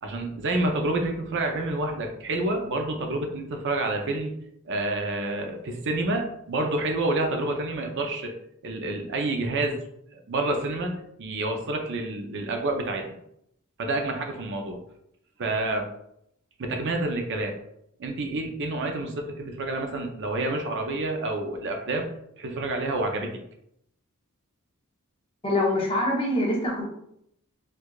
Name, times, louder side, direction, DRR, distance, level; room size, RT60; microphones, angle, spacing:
voice 1, 0.0-4.3 4.6-8.3 8.6-9.8 10.1-10.9 11.2-13.1 13.8-14.8 15.4-15.9 16.6-17.5 18.0-22.1 22.4-23.4, right 2 dB, 55° right, 3 dB, 0.5 m, -28 dB
voice 2, 25.4-26.9, left 1 dB, 25° left, -2 dB, 0.8 m, -24 dB
4.5 x 2.4 x 2.3 m, 0.76 s
head